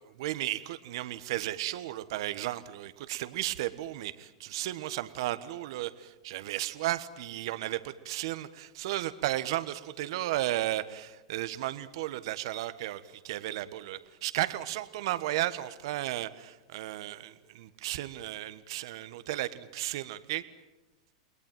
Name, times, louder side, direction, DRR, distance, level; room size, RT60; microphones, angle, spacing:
voice 1, 0.2-20.4, right 15 dB, 65° right, 13 dB, 1.3 m, -34 dB
29.5 x 21.0 x 9.2 m, 1.1 s
hypercardioid pair, 100°, 3 cm